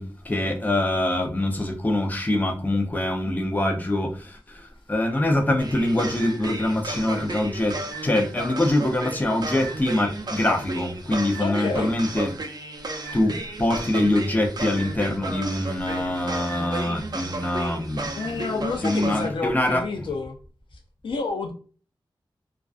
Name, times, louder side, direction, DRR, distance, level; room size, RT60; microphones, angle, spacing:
voice 1, 0.0-12.3 13.1-19.8, left 1 dB, 20° left, 0.6 m, -24 dB
sound 1, 5.6-19.3, right 2 dB, 50° right, 0.5 m, -34 dB
voice 2, 11.4-11.9 18.2-20.4 21.0-21.5, left 4 dB, 75° left, 0.4 m, -29 dB
2.3 x 2.3 x 2.4 m
wide cardioid pair, 70°, 9 cm